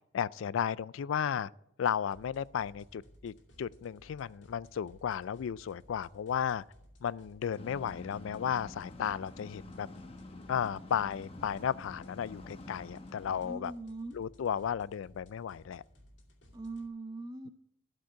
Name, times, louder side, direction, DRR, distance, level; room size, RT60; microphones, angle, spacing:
voice 1, 0.1-1.5 1.8-6.6 7.0-9.9 10.5-13.7 14.1-15.8, left 8 dB, 85° left, 0.3 m, -34 dB
sound 1, 2.1-16.9, equal, 65° left, 2.3 m, -59 dB
sound 2, 7.6-13.5, left 2 dB, 30° left, 1.0 m, -48 dB
voice 2, 13.4-14.2 16.5-17.5, right 2 dB, 20° right, 1.0 m, -41 dB
12.5 x 5.3 x 8.3 m
head